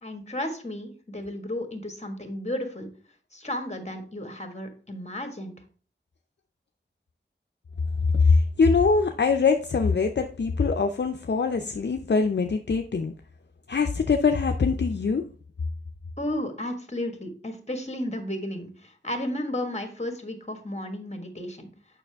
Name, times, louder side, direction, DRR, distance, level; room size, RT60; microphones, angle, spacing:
voice 1, 0.0-2.9 3.3-5.5 16.2-21.7, left 1 dB, 35° left, 6 dB, 1.5 m, -33 dB
voice 2, 8.1-13.1 13.7-15.2, left 4 dB, 60° left, 5 dB, 0.5 m, -23 dB
6.9 x 5.6 x 3.4 m, 0.41 s
wide cardioid pair, 50°, 20 cm